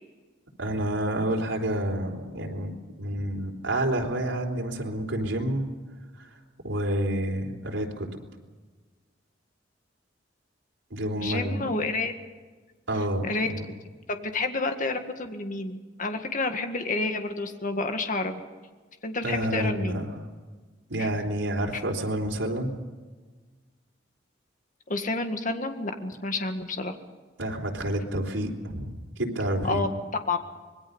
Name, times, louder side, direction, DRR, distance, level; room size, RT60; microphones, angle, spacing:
voice 1, 0.6-5.7 6.2-6.3 6.6-8.1 10.9-11.6 12.9-13.7 19.2-20.3 20.9-22.8 27.4-29.8, right 1 dB, 90° right, 1 dB, 3.9 m, -29 dB
voice 2, 11.2-12.1 13.2-13.5 14.1-18.4 19.0-20.0 21.0-21.1 24.9-26.9 29.6-29.9 30.3-30.4, left 3 dB, 45° left, 6 dB, 1.9 m, -29 dB
26.0 x 21.5 x 5.5 m, 1.4 s
head